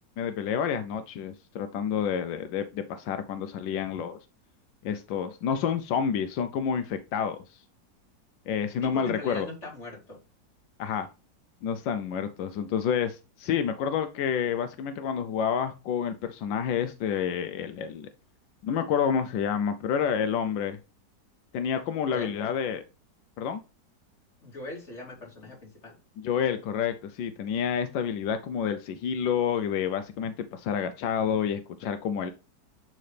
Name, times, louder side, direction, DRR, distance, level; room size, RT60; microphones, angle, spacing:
voice 1, 0.2-4.2 4.8-7.6 8.5-9.5 10.8-11.1 11.6-18.1 18.6-20.8 21.5-22.8 23.4-23.6 26.2-32.3, left 7 dB, 85° left, 9 dB, 1.3 m, -29 dB
voice 2, 8.8-10.2 22.1-22.3 24.4-25.6 25.8-25.9, left 2 dB, 40° left, -2 dB, 3.0 m, -40 dB
10.5 x 3.8 x 3.3 m, 0.31 s
omnidirectional pair, 2.0 m